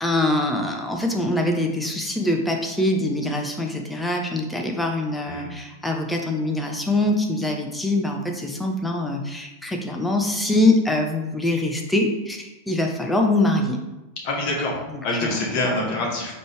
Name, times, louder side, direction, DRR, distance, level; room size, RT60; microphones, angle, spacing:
voice 1, 0.0-13.8 14.9-15.7, left 1 dB, 5° left, 2 dB, 0.6 m, -24 dB
voice 2, 14.2-16.3, left 2 dB, 45° left, -1 dB, 1.1 m, -26 dB
4.2 x 3.1 x 3.3 m, 1.0 s
figure-of-eight pair, 90°, 0 cm